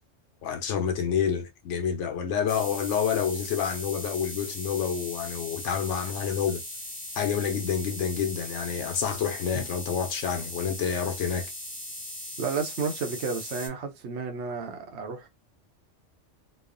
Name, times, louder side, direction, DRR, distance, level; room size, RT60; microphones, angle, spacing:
voice 1, 0.4-6.6 7.2-11.5, left 7 dB, 80° left, 0.9 m, -28 dB
sound 1, 2.5-13.7, left 1 dB, 10° left, 0.7 m, -39 dB
voice 2, 12.4-15.3, right 5 dB, 70° right, 0.9 m, -32 dB
3.0 x 2.0 x 2.4 m
omnidirectional pair, 1.2 m